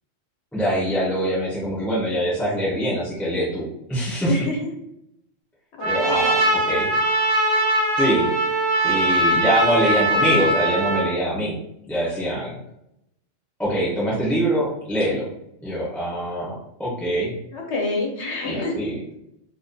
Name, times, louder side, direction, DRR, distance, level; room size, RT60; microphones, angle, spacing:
voice 1, 0.5-4.3 5.8-6.9 8.0-8.3 8.8-11.6 11.9-12.6 13.6-15.3 15.6-17.4 18.4-19.0, equal, ahead, -7 dB, 0.5 m, -24 dB
voice 2, 4.3-4.7 5.8-6.8 17.5-18.7, left 3 dB, 65° left, 0 dB, 0.9 m, -28 dB
Trumpet, 5.8-11.1, right 1 dB, 70° right, 0.9 m, -21 dB
2.6 x 2.4 x 2.2 m, 0.79 s
omnidirectional pair, 1.3 m